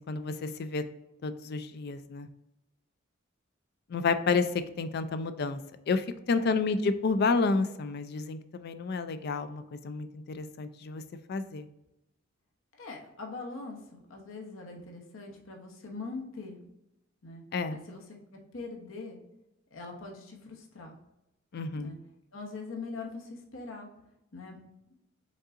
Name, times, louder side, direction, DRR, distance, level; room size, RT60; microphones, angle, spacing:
voice 1, 0.1-0.8 1.2-2.3 3.9-4.5 4.8-5.6 5.9-11.0 11.3-11.7 17.5-17.8 21.5-22.0, left 4 dB, 50° left, 11 dB, 0.4 m, -30 dB
voice 2, 6.4-6.7 12.7-16.6 17.2-17.4 17.7-19.2 19.7-20.9 21.7-22.0 22.3-23.9 24.3-24.6, left 3 dB, 75° left, 1 dB, 0.9 m, -42 dB
5.3 x 3.8 x 2.5 m, 0.88 s
head